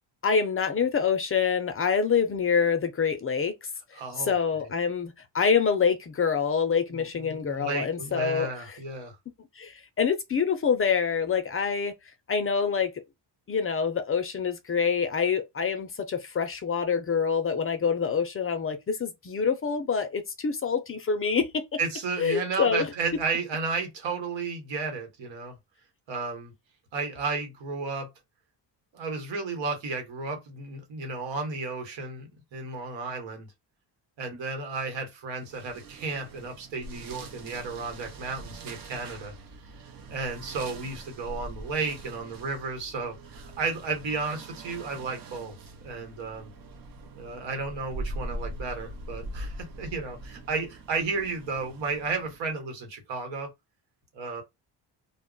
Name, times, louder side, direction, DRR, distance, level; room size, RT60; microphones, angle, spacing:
voice 1, 0.2-3.5 3.9-4.0 4.3-8.5 9.6-11.9 12.3-12.9 13.5-21.6 22.2-22.8, left 6 dB, 30° left, 0.5 m, -26 dB
voice 2, 3.9-4.3 6.9-9.2 21.8-25.6 26.1-26.5 26.9-28.1 28.9-33.5 34.2-39.3 39.8-45.5 45.8-46.5 47.2-53.5 54.1-54.4, right 4 dB, 80° right, 1.2 m, -33 dB
sound 1, 35.4-52.5, right 1 dB, 50° right, 0.7 m, -42 dB
2.2 x 2.0 x 3.8 m
cardioid pair, 105°, 45 cm